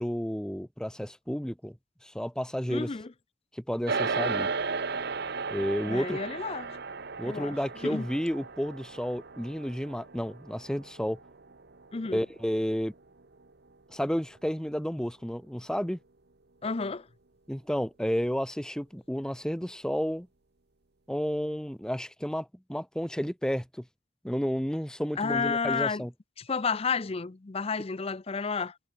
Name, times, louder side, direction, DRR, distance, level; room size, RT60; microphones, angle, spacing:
voice 1, 0.0-1.8 2.0-2.9 3.5-4.5 5.5-6.2 7.2-11.2 12.1-12.9 13.9-16.0 17.5-20.3 21.1-23.8 24.2-26.1, equal, 5° left, 1.1 m, -31 dB
voice 2, 2.7-3.1 5.9-6.8 7.2-7.5 7.8-8.1 11.9-12.2 16.6-17.1 25.2-26.0 26.5-28.7, left 5 dB, 30° left, 0.5 m, -31 dB
sound 1, 3.9-13.4, right 4 dB, 55° right, 1.1 m, -35 dB
head